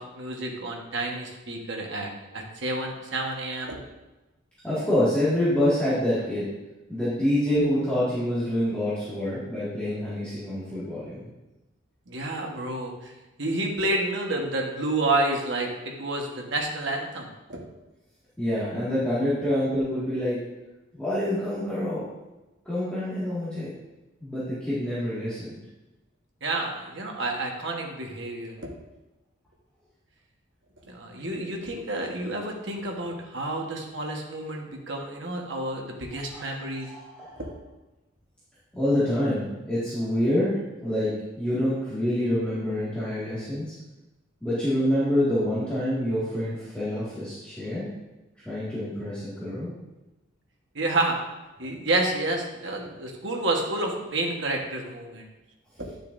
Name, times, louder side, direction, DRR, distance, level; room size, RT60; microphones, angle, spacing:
voice 1, 0.0-3.8 12.1-13.1 13.4-17.6 26.4-28.7 30.9-36.9 37.4-37.5 50.7-51.2 51.6-55.3, right 2 dB, 60° right, 0 dB, 1.3 m, -29 dB
voice 2, 4.6-6.5 6.9-11.3 18.4-20.4 20.9-22.1 22.7-23.7 24.2-25.5 36.3-36.4 36.8-37.3 38.7-41.1 41.4-43.7 44.4-47.9 48.5-49.7, left 1 dB, 5° left, -13 dB, 2.0 m, -26 dB
10.0 x 6.6 x 2.6 m, 1.0 s
head